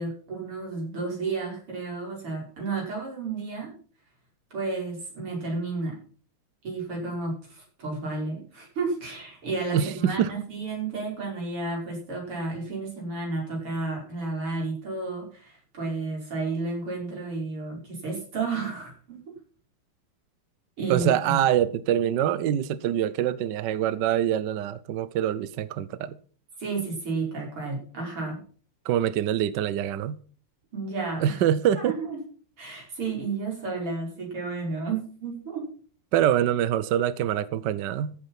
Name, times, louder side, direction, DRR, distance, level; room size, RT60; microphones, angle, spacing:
voice 1, 0.0-3.7 4.5-6.0 6.6-19.2 20.8-21.3 26.6-28.4 30.7-31.4 31.8-32.2 32.6-35.6, right 3 dB, 80° right, 6.6 m, -32 dB
voice 2, 9.7-10.3 20.9-26.2 28.9-30.2 31.2-31.9 36.1-38.1, right 10 dB, 65° right, 1.2 m, -25 dB
15.0 x 8.7 x 5.8 m
omnidirectional pair, 2.4 m